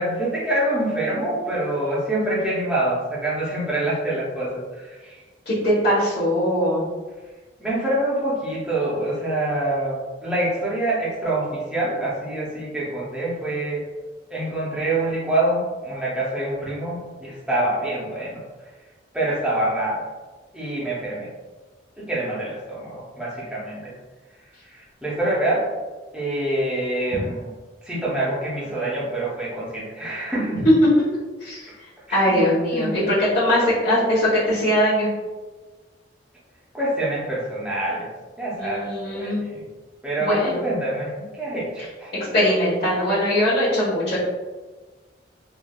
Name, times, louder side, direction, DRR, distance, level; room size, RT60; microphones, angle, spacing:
voice 1, 0.0-5.2 7.6-13.8 14.3-18.4 19.1-20.0 20.5-21.3 22.0-23.9 24.4-25.7 26.1-27.5 27.8-30.6 32.1-32.4 32.7-33.2 36.7-38.1 38.4-39.7 40.0-42.1, right 1 dB, 5° right, -6 dB, 0.6 m, -26 dB
voice 2, 5.5-6.8 31.4-31.7 32.1-35.1 38.6-39.4 40.2-40.6 42.3-44.2, equal, 50° left, -10 dB, 0.9 m, -21 dB
3.3 x 2.2 x 2.2 m, 1.3 s
head